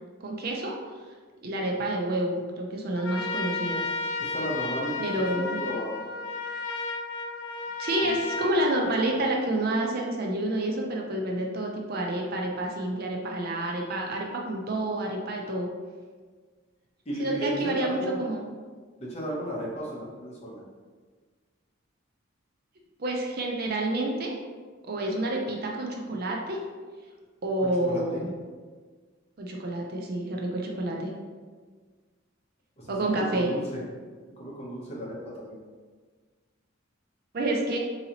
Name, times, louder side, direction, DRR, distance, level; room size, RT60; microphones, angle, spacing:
voice 1, 0.2-0.8 1.4-3.9 5.0-5.6 7.8-15.7 17.2-18.5 23.0-24.4 24.9-26.6 27.4-28.3 29.4-31.1 32.9-33.6 37.3-37.8, right 1 dB, 50° right, 0 dB, 0.4 m, -29 dB
Trumpet, 2.9-9.5, left 3 dB, 60° left, 0.3 m, -33 dB
voice 2, 4.2-6.0 8.0-8.2 17.1-18.2 19.0-20.6 27.6-28.2 32.8-33.8 34.4-35.6, right 1 dB, 30° left, -5 dB, 0.8 m, -35 dB
3.7 x 2.8 x 2.8 m, 1.5 s
head